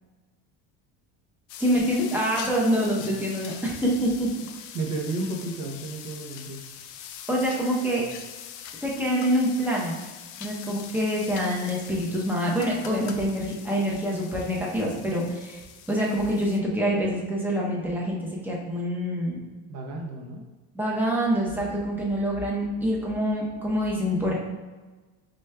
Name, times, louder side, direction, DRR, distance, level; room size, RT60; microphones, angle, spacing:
sound 1, 1.5-16.6, left 9 dB, 90° left, 0.5 m, -43 dB
voice 1, 1.6-4.3 7.3-8.1 8.8-9.9 10.4-15.6 15.9-19.4 20.7-24.3, equal, 5° right, -4 dB, 0.6 m, -26 dB
voice 2, 3.0-3.3 3.6-3.7 4.7-6.6 19.7-20.4, right 2 dB, 55° right, 1 dB, 0.8 m, -33 dB
5.0 x 3.2 x 2.2 m, 1.3 s
cardioid pair, 145°, 33 cm